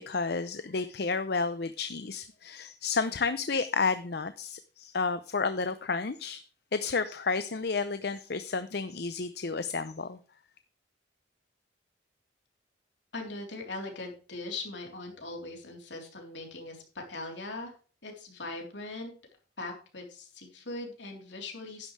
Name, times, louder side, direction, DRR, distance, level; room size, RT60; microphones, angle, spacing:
voice 1, 0.1-6.4 6.7-10.2, left 4 dB, 60° left, 0.6 m, -31 dB
voice 2, 13.1-17.7 18.0-19.1 19.6-21.9, left 2 dB, 75° left, 3.6 m, -40 dB
11.0 x 11.0 x 3.3 m
head